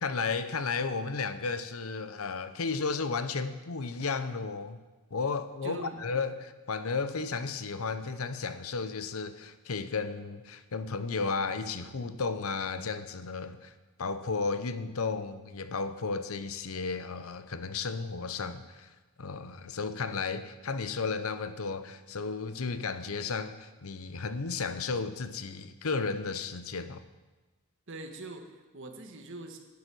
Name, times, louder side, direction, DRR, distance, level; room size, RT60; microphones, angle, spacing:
voice 1, 0.0-4.8 5.1-13.7 14.0-18.9 19.2-27.0, left 4 dB, 75° left, 12 dB, 0.8 m, -33 dB
voice 2, 5.6-6.0 27.9-29.6, right 2 dB, 60° right, 4 dB, 1.6 m, -43 dB
12.0 x 9.6 x 6.1 m, 1.2 s
head